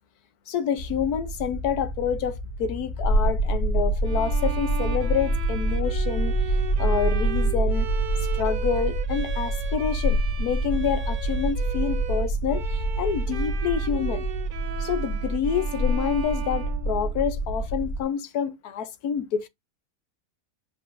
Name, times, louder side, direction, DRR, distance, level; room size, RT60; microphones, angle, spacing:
voice 1, 0.5-7.9 8.3-14.2 14.8-19.5, left 7 dB, 85° left, 1.3 m, -28 dB
sound 1, 0.8-18.0, right 1 dB, 40° left, 1.1 m, -26 dB
Bowed string instrument, 4.0-17.5, right 8 dB, 55° right, 0.6 m, -38 dB
7.6 x 5.5 x 2.5 m
omnidirectional pair, 1.6 m